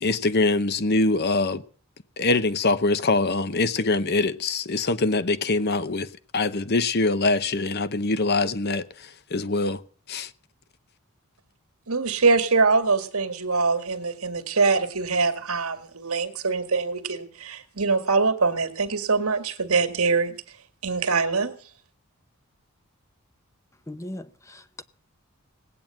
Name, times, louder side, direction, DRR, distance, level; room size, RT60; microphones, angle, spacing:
voice 1, 0.0-1.6 2.2-9.8 10.1-10.3, left 3 dB, 45° left, 0.8 m, -24 dB
voice 2, 11.9-20.4 20.8-21.5, right 4 dB, 75° right, 1.9 m, -23 dB
voice 3, 23.9-24.8, left 1 dB, 15° left, 0.7 m, -38 dB
18.0 x 8.9 x 7.6 m
head